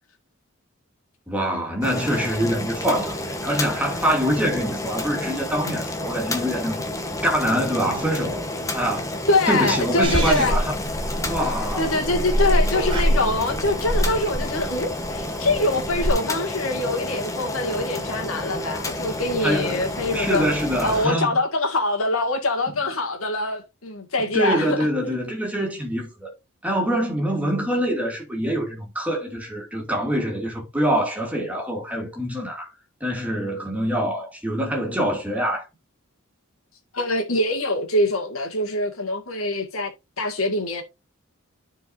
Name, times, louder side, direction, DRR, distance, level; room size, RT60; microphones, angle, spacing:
voice 1, 1.3-6.8 7.2-9.1 9.5-10.7 11.3-11.9 19.4-19.8 20.1-21.3 24.3-26.3 26.6-32.7 33.0-35.7, equal, 5° right, 2.5 m, -25 dB
Boiling, 1.8-21.1, left 1 dB, 15° left, 1.1 m, -30 dB
voice 2, 9.3-10.6 11.4-20.5 20.8-24.9 36.9-39.9 40.2-40.8, left 2 dB, 80° left, 2.0 m, -24 dB
Purr / Meow, 10.0-16.1, equal, 20° right, 2.5 m, -25 dB
13.5 x 4.8 x 2.7 m
head